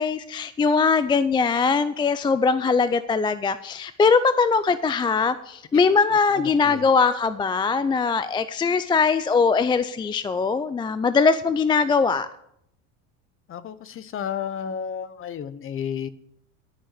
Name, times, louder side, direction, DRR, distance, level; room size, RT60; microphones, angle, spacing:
voice 1, 0.0-12.3, left 5 dB, 15° left, 13 dB, 0.3 m, -21 dB
voice 2, 6.3-6.8 13.5-16.1, left 8 dB, 35° left, 15 dB, 0.9 m, -32 dB
11.0 x 6.3 x 8.1 m, 0.73 s
supercardioid pair, 105°, 38 cm